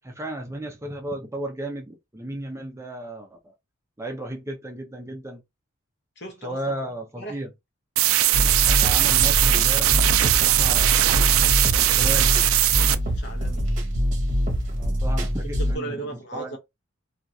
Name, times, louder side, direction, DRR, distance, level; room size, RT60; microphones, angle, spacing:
voice 1, 0.0-3.5 4.0-5.4 6.4-7.5 8.6-11.0 11.7-12.4 14.8-16.6, right 1 dB, 15° right, 0.5 m, -34 dB
voice 2, 6.2-6.8 7.2-7.4 13.0-13.7 15.6-16.6, right 2 dB, 50° left, 0.9 m, -36 dB
sound 1, 8.0-13.0, right 14 dB, 75° right, 0.3 m, -20 dB
sound 2, 8.3-15.7, equal, 35° right, 0.9 m, -24 dB
2.9 x 2.4 x 2.6 m
head